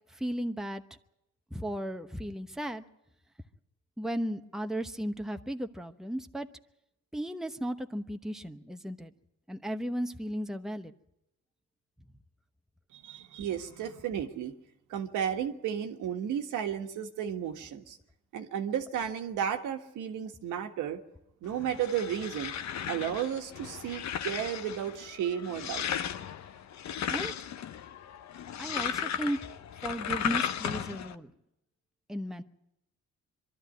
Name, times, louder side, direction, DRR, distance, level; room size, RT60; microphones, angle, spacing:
voice 1, 0.1-0.8 1.5-2.8 4.0-6.5 7.1-9.1 9.5-10.9 27.1-27.3 28.6-29.4 29.8-31.3 32.1-32.4, equal, ahead, 6 dB, 1.0 m, -35 dB
voice 2, 12.9-14.5 14.9-18.0 18.3-21.0 21.4-22.5 22.9-25.8, right 9 dB, 85° right, 4 dB, 1.6 m, -33 dB
sound 1, 21.5-31.1, left 9 dB, 65° left, 0.9 m, -36 dB
23.0 x 12.5 x 9.3 m, 0.89 s
cardioid pair, 90°, 30 cm